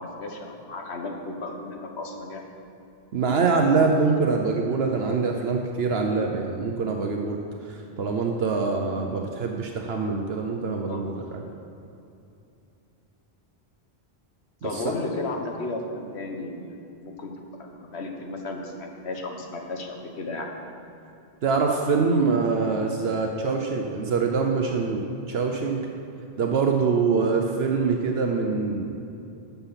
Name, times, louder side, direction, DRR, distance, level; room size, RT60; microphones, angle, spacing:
voice 1, 0.0-2.5 10.9-11.0 14.6-17.3 17.6-20.5, left 2 dB, 85° left, 3 dB, 1.5 m, -34 dB
voice 2, 3.1-7.4 7.7-11.4 14.6-14.8 21.4-25.0 25.3-25.8 26.4-28.9, right 4 dB, 75° right, 2 dB, 1.0 m, -24 dB
12.5 x 7.1 x 5.8 m, 2.7 s
omnidirectional pair, 1.1 m